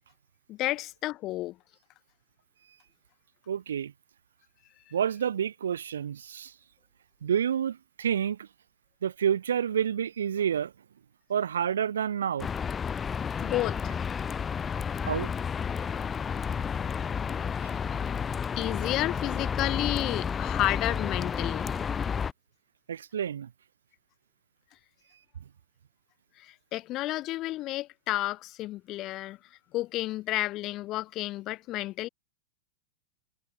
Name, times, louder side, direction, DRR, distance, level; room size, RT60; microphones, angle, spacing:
voice 1, 0.5-1.6 13.4-14.0 14.9-15.2 18.6-21.7 26.4-29.4 29.7-32.1, left 16 dB, 35° left, 1.8 m, -31 dB
voice 2, 3.5-3.9 4.9-6.5 7.2-8.5 9.0-10.7 11.3-12.5 15.1-15.3 22.9-23.5, right 8 dB, 65° right, 0.5 m, -29 dB
sound 1, 12.4-22.3, left 6 dB, 20° left, 1.1 m, -31 dB
figure-of-eight pair, 90°, 0 cm